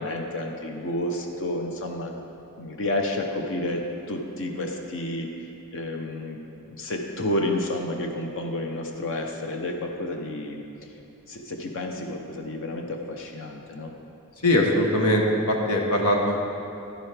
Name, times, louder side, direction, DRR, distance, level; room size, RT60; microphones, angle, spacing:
voice 1, 0.0-2.1 2.6-5.3 5.7-6.4 6.7-10.6 11.3-13.9, left 1 dB, 60° left, 2 dB, 0.8 m, -30 dB
voice 2, 14.4-16.4, left 1 dB, 85° left, 1 dB, 1.3 m, -21 dB
10.5 x 10.0 x 3.4 m, 2.9 s
head